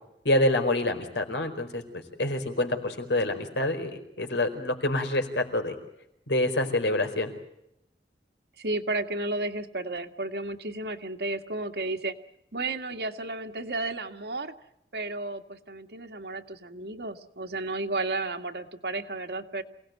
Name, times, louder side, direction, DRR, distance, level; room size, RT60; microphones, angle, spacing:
voice 1, 0.2-5.7 6.3-7.3, left 1 dB, 90° left, 6 dB, 4.6 m, -27 dB
voice 2, 8.6-12.1 12.5-14.5 14.9-19.6, right 2 dB, 65° right, 6 dB, 1.9 m, -33 dB
28.0 x 18.0 x 9.3 m, 0.81 s
head